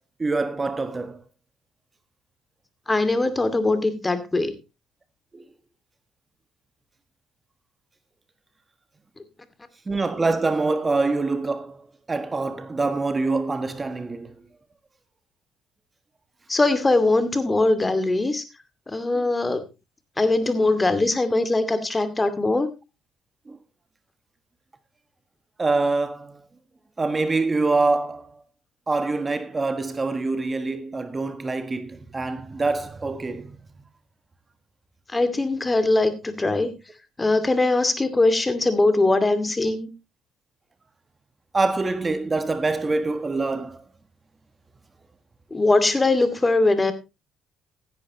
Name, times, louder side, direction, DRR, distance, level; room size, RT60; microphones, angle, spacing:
voice 1, 0.2-1.2 5.3-5.4 9.9-14.3 23.5-23.6 25.6-26.4 27.0-28.3 28.9-33.6 41.5-43.8, right 3 dB, 30° right, 1.4 m, -25 dB
voice 2, 2.9-4.6 16.5-18.4 18.9-19.6 20.2-22.7 35.1-36.7 37.2-39.9 45.5-46.9, left 2 dB, 20° left, 2.4 m, -21 dB
15.5 x 10.5 x 3.1 m
hypercardioid pair, 55°, 0 cm